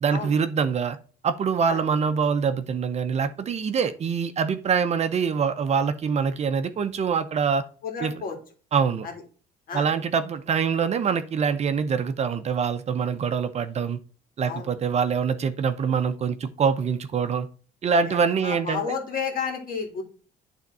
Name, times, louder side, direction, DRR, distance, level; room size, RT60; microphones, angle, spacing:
voice 1, 0.0-1.0 1.2-7.6 8.0-8.1 8.7-9.1 9.7-14.0 14.4-17.5 17.8-19.0, right 6 dB, 40° right, 0.6 m, -24 dB
voice 2, 7.8-8.4 9.0-9.1 9.7-9.9 14.5-14.7 17.9-18.2 18.4-20.0, left 6 dB, 60° left, 2.3 m, -31 dB
9.1 x 3.6 x 4.1 m
cardioid pair, 110°, 17 cm